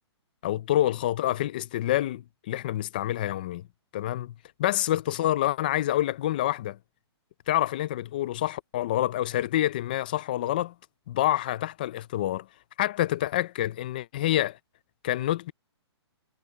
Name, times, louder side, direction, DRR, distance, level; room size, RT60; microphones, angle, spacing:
voice 1, 0.4-3.6 3.9-4.3 4.6-6.8 7.5-10.7 11.1-12.5 12.8-14.6 15.0-15.5, left 13 dB, 20° left, 0.4 m, -27 dB
hypercardioid pair, 170°, 14 cm